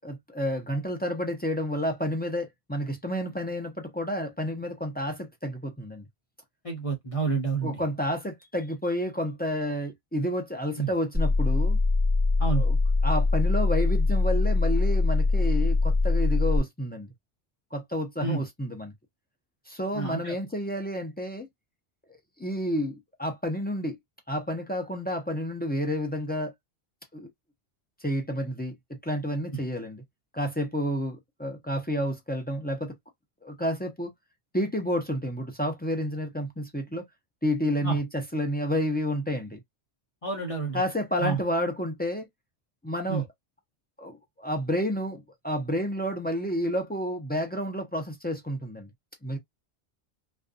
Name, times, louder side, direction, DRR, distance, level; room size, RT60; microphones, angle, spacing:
voice 1, 0.0-6.1 7.6-11.8 12.5-12.8 13.0-17.1 17.7-18.9 19.7-21.5 22.4-24.0 24.3-26.5 27.1-27.3 28.0-30.0 30.3-32.9 33.4-34.1 34.5-37.0 37.4-39.6 40.7-42.3 42.8-43.3 44.0-48.9 49.2-49.4, equal, 15° left, 0.3 m, -30 dB
voice 2, 6.6-7.8 10.8-10.9 12.4-12.6 18.2-18.4 19.9-20.4 37.8-38.0 40.2-40.8 41.2-41.4 43.1-43.2, right 5 dB, 35° left, 0.8 m, -29 dB
sound 1, 11.1-16.6, left 3 dB, 30° right, 0.7 m, -23 dB
2.5 x 2.3 x 2.3 m
omnidirectional pair, 1.1 m